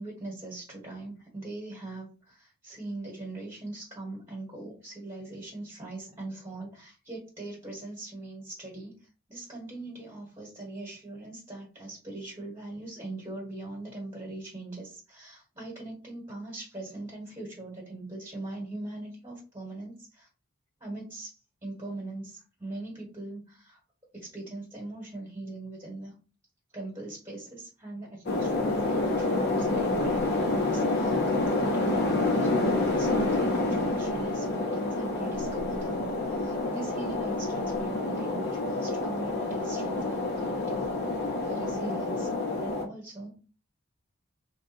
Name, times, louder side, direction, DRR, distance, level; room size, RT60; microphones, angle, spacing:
voice 1, 0.0-20.3 20.8-23.8 24.1-26.1 26.7-41.1 41.4-42.3 42.6-43.4, right 2 dB, 20° right, -4 dB, 1.4 m, -41 dB
sound 1, 28.3-42.9, left 2 dB, 50° left, 0.9 m, -28 dB
3.3 x 2.4 x 4.3 m, 0.34 s
head